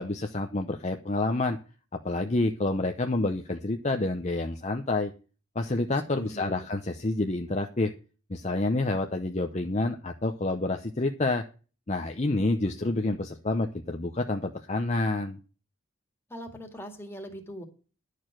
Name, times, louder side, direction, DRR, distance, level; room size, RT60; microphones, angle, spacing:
voice 1, 0.0-1.6 2.0-5.1 5.5-7.9 8.3-11.4 11.9-15.4, left 2 dB, 35° left, 5 dB, 0.7 m, -28 dB
voice 2, 6.1-6.7 16.3-17.6, equal, 10° left, 3 dB, 2.0 m, -41 dB
11.0 x 6.6 x 6.0 m, 0.36 s
head